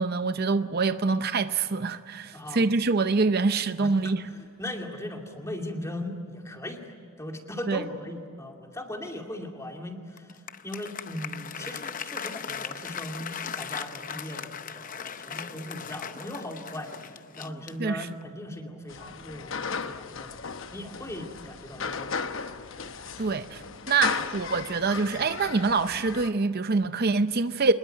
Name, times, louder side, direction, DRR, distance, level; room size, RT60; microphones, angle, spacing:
voice 1, 0.0-4.2 7.7-7.8 17.8-18.1 23.2-27.7, right 4 dB, 45° right, 0.6 m, -25 dB
voice 2, 2.3-2.6 3.8-10.3 10.6-17.0 17.4-20.4 20.7-22.2, left 1 dB, 15° left, 2.4 m, -38 dB
Applause, 10.2-18.3, left 7 dB, 40° left, 0.7 m, -38 dB
sound 1, 18.9-26.3, left 5 dB, 65° left, 0.9 m, -35 dB
25.0 x 21.5 x 9.1 m
head